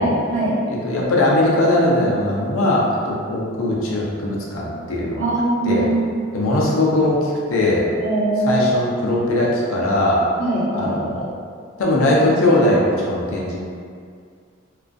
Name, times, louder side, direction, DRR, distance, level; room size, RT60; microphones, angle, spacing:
voice 1, 0.0-0.5 5.2-6.1 8.0-8.7 10.4-10.9, right 2 dB, 35° right, -12 dB, 0.9 m, -21 dB
voice 2, 0.7-5.2 5.6-5.9 6.3-7.8 8.4-10.2 10.8-11.2 11.8-13.6, left 1 dB, 80° left, -4 dB, 0.5 m, -19 dB
2.5 x 2.3 x 2.3 m, 2.2 s
head